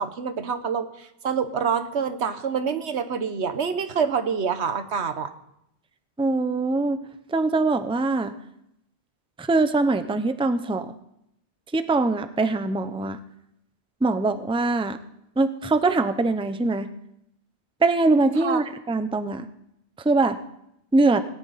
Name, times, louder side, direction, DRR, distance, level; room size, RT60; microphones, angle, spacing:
voice 1, 0.0-5.3 18.4-18.6, right 6 dB, 80° right, 10 dB, 1.3 m, -26 dB
voice 2, 6.2-7.0 7.3-8.3 9.4-10.9 11.7-13.2 14.0-15.0 15.4-16.9 17.8-19.4 20.0-20.4 20.9-21.2, right 3 dB, 5° right, 10 dB, 0.6 m, -22 dB
18.0 x 18.0 x 4.1 m, 0.79 s
omnidirectional pair, 1.1 m